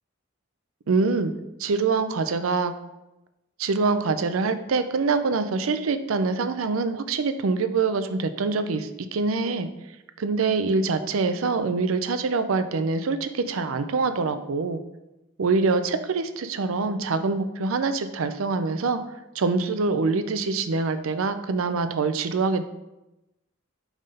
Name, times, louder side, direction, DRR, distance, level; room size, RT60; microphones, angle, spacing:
voice 1, 0.9-1.3 1.6-2.7 3.6-9.7 10.2-14.8 15.4-19.0 19.4-22.6, right 4 dB, 90° right, 10 dB, 0.5 m, -25 dB
5.4 x 3.6 x 5.3 m, 0.96 s
head